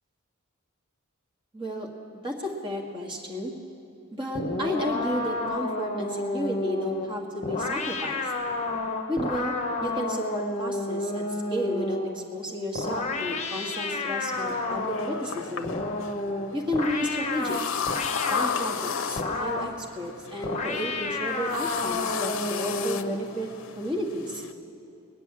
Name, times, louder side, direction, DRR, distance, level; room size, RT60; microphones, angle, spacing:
voice 1, 1.5-1.9 2.2-3.5 4.1-8.3 9.1-9.6 9.8-15.8 16.5-17.6 18.3-23.5 23.8-24.4, equal, 25° right, -1 dB, 1.8 m, -32 dB
sound 1, 4.3-12.2 12.7-15.3 15.6-18.6 19.2-19.8 20.4-23.3, left 2 dB, 35° left, 1.0 m, -30 dB
sound 2, 14.3-24.5, left 6 dB, 70° left, 0.6 m, -34 dB
20.0 x 6.9 x 9.7 m, 2.7 s
head